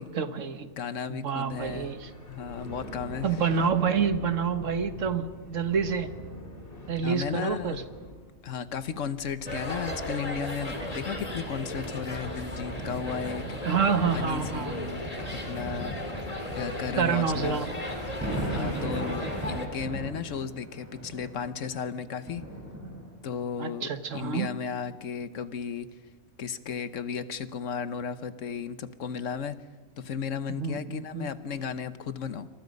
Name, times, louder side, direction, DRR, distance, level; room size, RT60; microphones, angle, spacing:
voice 1, 0.0-0.7 1.1-2.1 3.2-6.1 6.9-7.8 13.6-14.7 17.0-17.7 18.5-19.0 23.6-24.5 30.5-31.3, right 6 dB, 85° right, 9 dB, 1.7 m, -28 dB
voice 2, 0.8-1.9 2.3-3.3 7.0-7.9 8.4-13.4 14.1-15.1 15.5-15.9 16.5-17.6 18.5-22.4 23.2-25.9 26.4-29.7 30.0-32.5, left 6 dB, 85° left, 12 dB, 1.3 m, -34 dB
sound 1, 1.5-13.9, left 1 dB, 45° left, 3.9 m, -46 dB
sound 2, 9.5-19.7, left 1 dB, 30° left, 2.9 m, -35 dB
sound 3, 10.7-23.4 24.1-24.3, right 1 dB, 10° right, 4.7 m, -40 dB
28.0 x 25.5 x 5.3 m, 1.4 s
omnidirectional pair, 1.3 m